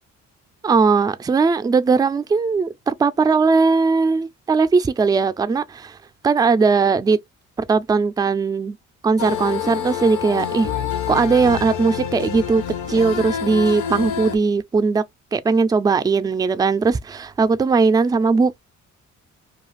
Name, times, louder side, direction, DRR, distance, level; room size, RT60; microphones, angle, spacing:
voice 1, 0.6-6.0 6.2-7.2 7.7-8.8 9.0-10.7 11.1-15.0 15.3-18.6, right 4 dB, 15° right, 0.3 m, -19 dB
sound 1, 9.2-14.4, left 9 dB, 85° left, 0.7 m, -27 dB
2.4 x 2.4 x 3.1 m
cardioid pair, 90°, 30 cm